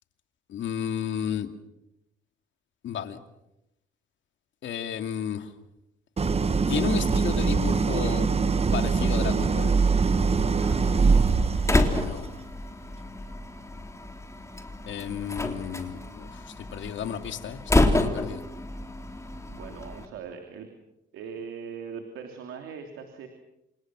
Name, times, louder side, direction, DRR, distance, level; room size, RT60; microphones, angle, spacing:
voice 1, 0.5-1.5 2.8-3.2 4.6-5.5 6.7-8.3 8.7-9.7 11.9-12.3 14.9-16.4 16.7-18.4, left 9 dB, 70° left, 8 dB, 2.4 m, -32 dB
Idling, 6.2-12.2, right 4 dB, 30° right, 1.3 m, -23 dB
Slam, 10.6-20.0, left 2 dB, 15° left, 3.5 m, -29 dB
voice 2, 19.4-20.7 21.1-23.3, right 6 dB, 90° right, 5 dB, 3.1 m, -40 dB
28.5 x 28.0 x 6.2 m, 0.88 s
cardioid pair, 90°, 20 cm